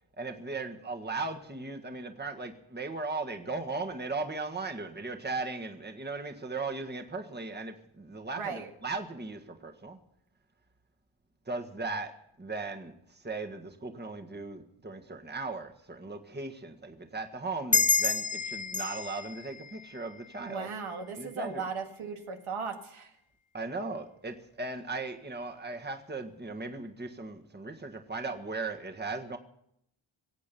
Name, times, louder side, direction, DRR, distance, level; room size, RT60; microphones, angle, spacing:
voice 1, 0.2-10.0 11.5-20.7 21.2-21.6 23.5-29.4, right 3 dB, 20° right, 4 dB, 1.6 m, -37 dB
voice 2, 8.4-8.7 20.4-23.1, right 5 dB, 85° right, 4 dB, 1.9 m, -37 dB
sound 1, 17.7-20.8, left 4 dB, 15° left, 0.6 m, -30 dB
23.0 x 8.5 x 6.9 m, 0.74 s
wide cardioid pair, 95°, 48 cm